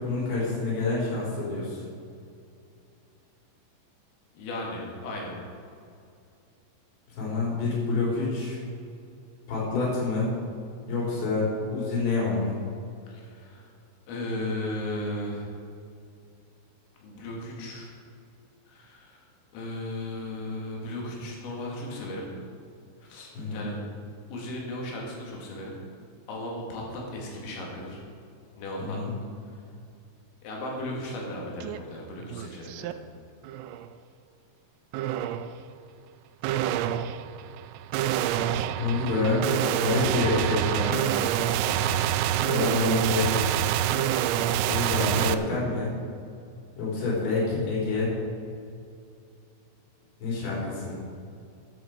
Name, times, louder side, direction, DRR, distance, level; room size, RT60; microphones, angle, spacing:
voice 1, 0.0-1.8 7.1-8.6 9.5-10.3 10.9-12.6 23.3-23.7 28.8-29.1 38.5-39.4 39.8-41.2 42.5-43.4 44.6-45.9 46.8-48.1 50.2-51.0, left 3 dB, 65° left, -6 dB, 6.1 m, -27 dB
voice 2, 4.4-5.3 13.1-13.7 14.1-15.5 17.0-17.9 18.7-19.3 19.5-22.2 23.0-23.8 24.3-25.7 26.3-28.0 28.6-29.0 30.4-33.0 41.6-42.0, left 1 dB, 90° left, -2 dB, 5.2 m, -36 dB
sound 1, 31.6-31.8 32.2-32.9 33.4-33.9 34.9-35.5 36.4-45.3, right 11 dB, 85° right, 3.2 m, -27 dB
14.5 x 10.0 x 4.6 m, 2.5 s
omnidirectional pair, 5.7 m